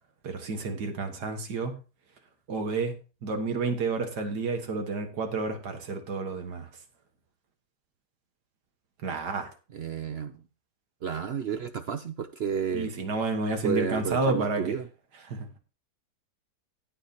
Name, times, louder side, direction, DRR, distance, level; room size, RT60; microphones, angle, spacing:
voice 1, 0.2-1.8 2.5-3.0 3.2-6.7 9.0-9.5 12.7-14.7 15.3-15.5, right 3 dB, 90° right, 2.1 m, -30 dB
voice 2, 9.7-10.4 11.0-12.9 13.6-14.9, right 7 dB, 65° right, 0.6 m, -31 dB
18.0 x 6.1 x 2.8 m
omnidirectional pair, 1.7 m